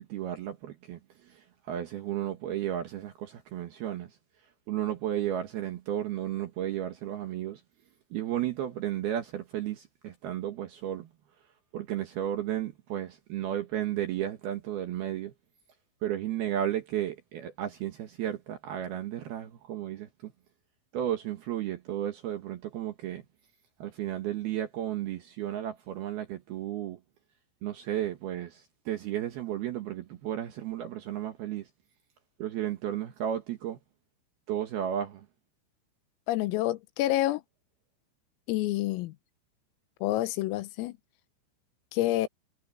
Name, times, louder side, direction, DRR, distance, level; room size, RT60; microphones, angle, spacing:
voice 1, 0.0-4.2 4.7-7.6 8.1-11.1 11.7-15.3 16.0-20.3 20.9-23.2 23.8-27.0 27.6-31.7 32.4-33.8 34.5-35.3, right 11 dB, 70° right, 2.6 m, -33 dB
voice 2, 36.3-37.4 38.5-39.2 40.0-41.0 41.9-42.3, left 15 dB, 85° left, 3.7 m, -28 dB
omnidirectional pair, 6.0 m